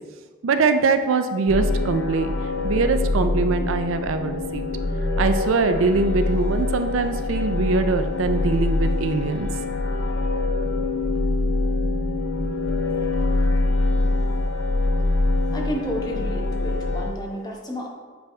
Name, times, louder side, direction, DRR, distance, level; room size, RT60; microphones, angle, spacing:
voice 1, 0.4-2.3 2.6-4.6 5.2-9.5, right 4 dB, 90° right, 8 dB, 0.4 m, -22 dB
sound 1, 1.5-17.1, left 2 dB, 65° left, 0.6 m, -24 dB
voice 2, 15.5-17.9, equal, 20° left, -1 dB, 0.9 m, -31 dB
8.7 x 3.4 x 3.5 m, 1.4 s
head